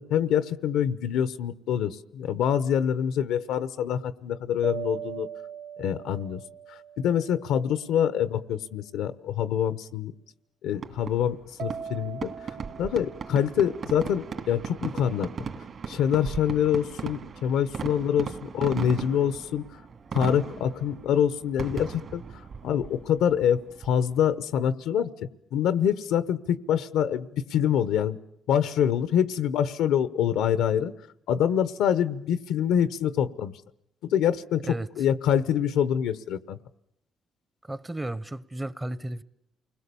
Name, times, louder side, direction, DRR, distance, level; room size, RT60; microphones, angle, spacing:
voice 1, 0.0-5.3 5.8-6.4 7.0-10.1 10.6-12.3 12.8-15.3 15.9-19.6 20.1-22.2 22.6-28.2 28.5-30.9 31.3-33.5 34.0-34.6 35.0-36.6, left 9 dB, 90° left, 1.0 m, -25 dB
sound 1, 4.6-8.2 11.6-14.6, right 7 dB, 85° right, 2.6 m, -41 dB
Fireworks, 10.7-24.3, right 6 dB, 55° right, 2.7 m, -38 dB
voice 2, 37.7-39.2, right 1 dB, 15° right, 0.9 m, -33 dB
29.0 x 20.5 x 7.0 m
cardioid pair, 90°, 0 cm